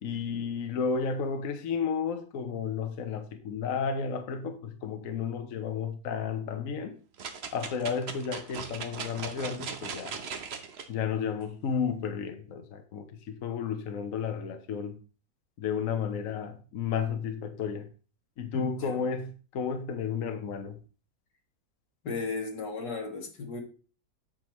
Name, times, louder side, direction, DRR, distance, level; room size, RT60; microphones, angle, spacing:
voice 1, 0.0-7.0 7.5-10.2 10.9-15.0 15.6-17.9 18.4-20.8, left 6 dB, 60° left, 1.1 m, -32 dB
sound 1, 7.2-10.8 11.4-11.5, right 5 dB, 45° right, 0.9 m, -39 dB
voice 2, 18.5-19.0 22.0-23.6, left 4 dB, 85° left, 2.4 m, -35 dB
8.7 x 6.2 x 3.1 m
omnidirectional pair, 1.8 m